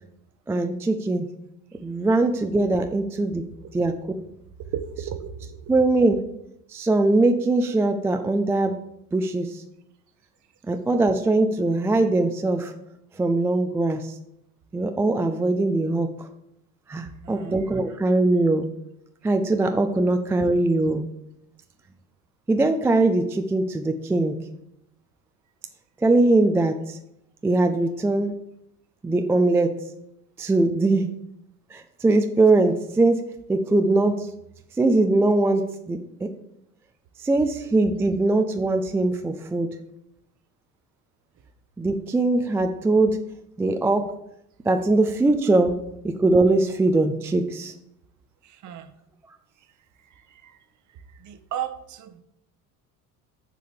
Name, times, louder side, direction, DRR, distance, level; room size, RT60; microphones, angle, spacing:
voice 1, 0.5-1.3 1.8-3.4 3.7-3.9 5.7-6.2 6.7-8.8 9.1-9.6 10.7-12.7 13.2-14.2 14.7-16.3 16.9-18.7 19.2-21.1 22.5-24.4 26.0-27.0 27.4-28.3 29.0-29.7 30.4-31.1 31.7-33.2 33.5-34.3 34.8-36.3 37.2-39.7 41.8-43.2 43.6-44.1 44.7-45.7 46.0-47.7, right 2 dB, 5° right, 6 dB, 0.4 m, -21 dB
voice 2, 4.7-5.6 17.2-17.6 48.4-48.9 50.2-50.6 51.2-52.2, right 9 dB, 40° right, 10 dB, 1.0 m, -35 dB
6.7 x 4.9 x 6.7 m, 0.79 s
figure-of-eight pair, 65°, 46 cm